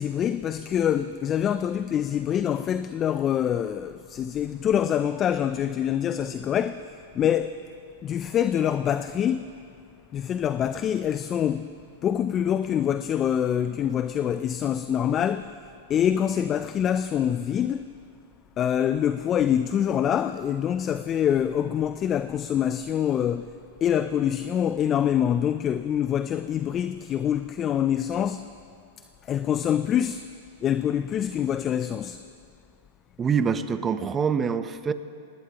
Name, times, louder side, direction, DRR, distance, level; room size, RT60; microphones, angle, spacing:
voice 1, 0.0-7.6 8.0-9.5 10.1-11.7 12.0-15.5 15.9-17.9 18.6-23.6 23.8-28.5 29.3-30.3 30.6-32.2, left 9 dB, 30° left, 0.4 m, -25 dB
voice 2, 33.2-34.9, right 6 dB, 20° right, 0.8 m, -25 dB
23.5 x 19.0 x 3.0 m
hypercardioid pair, 120°, 0 cm